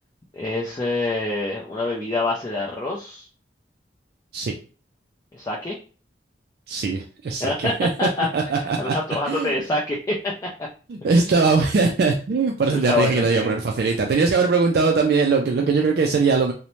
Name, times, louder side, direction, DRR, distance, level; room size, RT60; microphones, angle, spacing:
voice 1, 0.3-3.3 5.3-5.8 7.4-8.3 8.8-10.7 11.0-11.1 12.7-13.5, left 2 dB, 20° left, -4 dB, 0.3 m, -26 dB
voice 2, 6.7-8.9 9.3-9.5 10.9-16.5, right 4 dB, 55° right, 1 dB, 0.3 m, -21 dB
2.6 x 2.0 x 3.0 m, 0.36 s
head